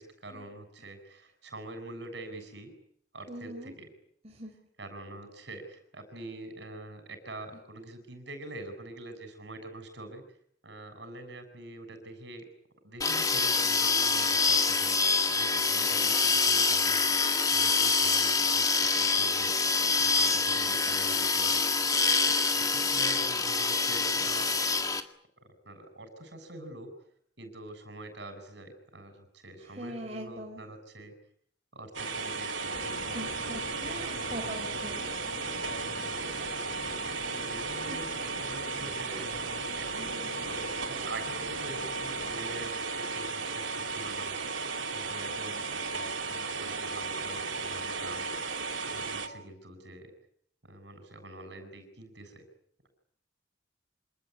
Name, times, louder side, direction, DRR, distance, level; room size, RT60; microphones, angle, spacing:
voice 1, 0.0-2.7 3.1-3.9 4.8-10.2 10.6-12.4 12.8-15.0 15.3-19.5 20.0-21.6 22.6-24.8 25.6-26.9 27.4-31.1 31.7-32.8 36.0-36.4 37.4-44.6 44.9-48.3 48.9-50.1 50.6-52.5, right 2 dB, 65° right, 8 dB, 7.7 m, -45 dB
voice 2, 3.3-3.7 4.2-4.5 29.6-30.6 33.1-35.0 37.8-38.0, right 1 dB, 35° right, 1 dB, 4.2 m, -41 dB
sound 1, 13.0-25.0, left 4 dB, 20° left, 1.9 m, -26 dB
sound 2, 31.9-49.3, right 4 dB, 85° right, 2.9 m, -35 dB
sound 3, 32.7-42.7, left 2 dB, 85° left, 5.2 m, -44 dB
27.0 x 20.0 x 9.8 m, 0.67 s
head